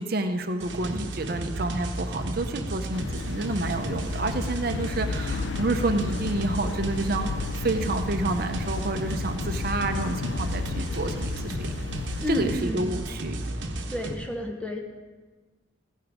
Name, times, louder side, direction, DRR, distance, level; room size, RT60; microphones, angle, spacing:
voice 1, 0.0-7.3 7.5-11.7 12.3-13.4, right 2 dB, 50° right, 6 dB, 0.6 m, -29 dB
sound 1, 0.6-14.1, right 1 dB, 70° right, 1.0 m, -33 dB
sound 2, 2.9-12.7, left 5 dB, 75° left, 0.4 m, -34 dB
voice 2, 12.2-12.9 13.9-14.8, left 1 dB, 5° left, 2 dB, 1.0 m, -31 dB
15.5 x 10.0 x 3.6 m, 1.3 s
head